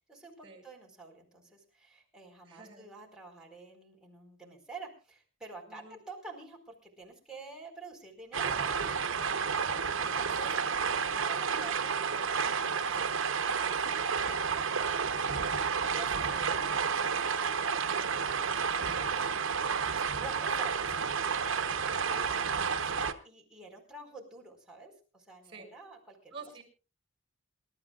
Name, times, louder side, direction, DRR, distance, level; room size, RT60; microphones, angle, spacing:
voice 1, 0.0-9.0 10.0-21.9 22.1-26.3, right 3 dB, 5° right, -2 dB, 4.6 m, -50 dB
voice 2, 2.4-2.9 5.7-6.0 9.2-9.4 19.1-19.3 25.4-25.7 26.3-26.6, right 4 dB, 30° right, 5 dB, 6.6 m, -48 dB
sound 1, 8.3-23.1, right 6 dB, 70° right, 1.1 m, -31 dB
27.5 x 13.0 x 2.5 m, 0.33 s
head